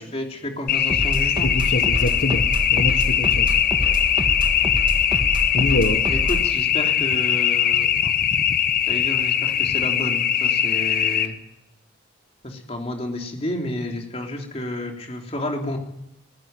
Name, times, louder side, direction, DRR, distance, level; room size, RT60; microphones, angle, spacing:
voice 1, 0.0-1.5 6.1-8.1 8.9-11.4 12.4-15.8, left 1 dB, 30° left, 2 dB, 3.4 m, -31 dB
sound 1, 0.7-11.3, left 9 dB, 50° left, 1.1 m, -21 dB
sound 2, 0.9-6.5, right 1 dB, 25° right, 1.8 m, -27 dB
voice 2, 1.4-3.6 5.5-6.1, left 2 dB, 65° left, 6 dB, 1.5 m, -25 dB
19.5 x 15.5 x 9.1 m, 0.84 s
head